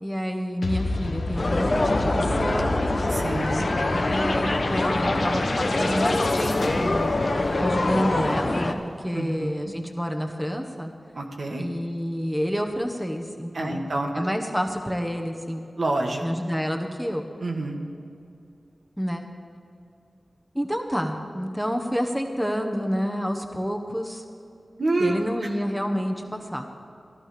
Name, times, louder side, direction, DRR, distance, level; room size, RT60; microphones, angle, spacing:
voice 1, 0.0-2.9 3.9-7.1 7.6-10.9 11.6-13.8 14.1-15.7 16.2-17.3 19.0-19.2 20.5-24.2 25.0-26.7, equal, 5° right, 3 dB, 1.4 m, -29 dB
sound 1, 0.6-8.4, left 2 dB, 85° left, 1.2 m, -30 dB
sound 2, 1.4-8.7, left 2 dB, 55° left, 1.1 m, -25 dB
voice 2, 3.1-3.7 9.1-9.5 11.1-11.7 13.5-14.2 15.8-16.2 17.4-17.8 24.8-25.2, right 2 dB, 70° right, 1 dB, 1.5 m, -27 dB
15.0 x 11.5 x 5.2 m, 2.6 s
cardioid pair, 40°, 0 cm